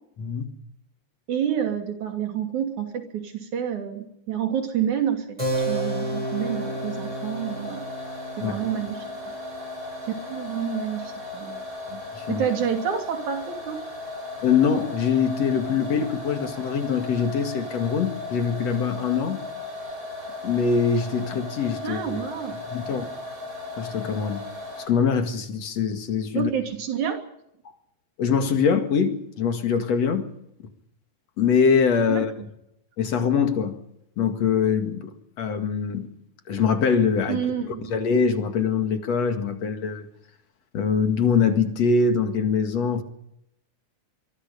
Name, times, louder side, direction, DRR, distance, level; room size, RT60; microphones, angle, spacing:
voice 1, 0.2-0.5 8.4-8.6 11.9-12.4 14.4-19.4 20.4-22.2 22.7-23.1 23.8-24.4 24.9-26.5 28.2-30.3 31.4-32.3 33.0-33.8 34.2-36.1 36.5-40.1 40.7-43.0, left 6 dB, 60° left, 3.1 m, -23 dB
voice 2, 1.3-5.4 5.7-7.8 8.4-9.3 10.1-11.6 12.3-13.8 21.8-22.6 26.3-27.2 32.1-32.2 37.3-37.9, right 8 dB, 75° right, 4.2 m, -28 dB
Keyboard (musical), 5.4-11.5, right 2 dB, 10° right, 7.7 m, -33 dB
sound 1, 5.5-24.9, left 2 dB, 30° right, 8.3 m, -36 dB
24.5 x 24.0 x 5.3 m
omnidirectional pair, 3.4 m